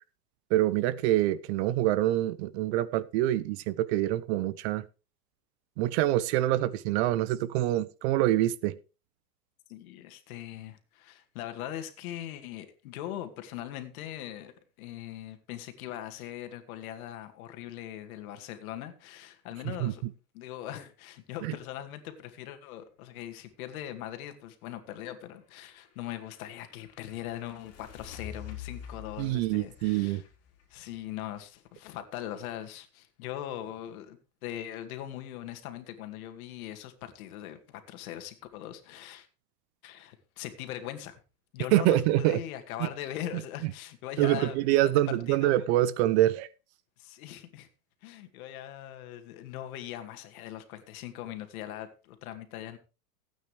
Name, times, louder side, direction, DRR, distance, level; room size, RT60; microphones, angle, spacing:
voice 1, 0.5-4.8 5.8-8.8 19.8-19.9 21.4-21.5 29.2-30.2 41.7-42.4 44.2-46.5, right 15 dB, 45° right, 0.7 m, -25 dB
voice 2, 9.7-20.0 20.3-30.2 30.7-39.3 39.8-41.2 41.5-45.7 47.0-47.7 48.0-52.8, left 12 dB, 60° left, 2.3 m, -41 dB
sound 1, 25.6-31.3, left 9 dB, 30° left, 4.1 m, -47 dB
16.5 x 9.0 x 3.3 m
hypercardioid pair, 130°, 49 cm